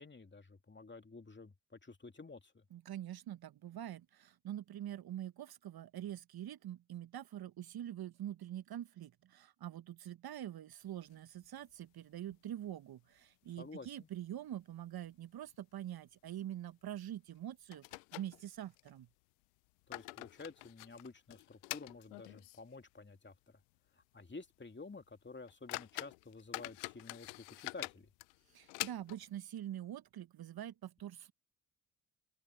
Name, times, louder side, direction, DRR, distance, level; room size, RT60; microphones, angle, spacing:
voice 1, 0.0-2.6 13.6-14.1 19.9-23.6 23.9-28.1, left 3 dB, 25° left, 2.7 m, -51 dB
voice 2, 2.7-19.1 28.5-31.3, right 11 dB, 55° right, 1.3 m, -45 dB
sound 1, 11.0-11.9 12.3-12.4 12.7-12.8 13.4-13.9 14.2-14.4 15.0-15.1 15.5-15.6 17.0-17.1 17.7-18.9 19.6-22.8 23.1-23.2 23.8-23.9 24.3-24.5 25.0-25.1 25.5-29.4, left 28 dB, 80° left, 0.9 m, -46 dB
open air
hypercardioid pair, 45°, 44 cm